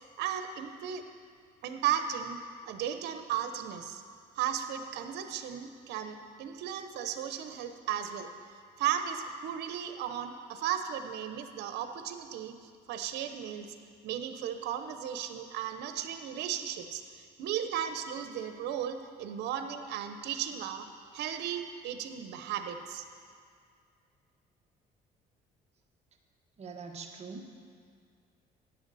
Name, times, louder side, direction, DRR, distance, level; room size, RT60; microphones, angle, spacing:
voice 1, 0.2-1.0 1.6-2.4 2.6-4.0 4.3-8.3 8.8-12.5 12.9-13.7 14.0-20.9 21.1-23.0, right 9 dB, 85° right, 8 dB, 0.9 m, -35 dB
voice 2, 26.6-27.5, right 4 dB, 40° right, 1 dB, 1.2 m, -43 dB
13.0 x 9.6 x 4.2 m, 2.2 s
cardioid pair, 110°, 17 cm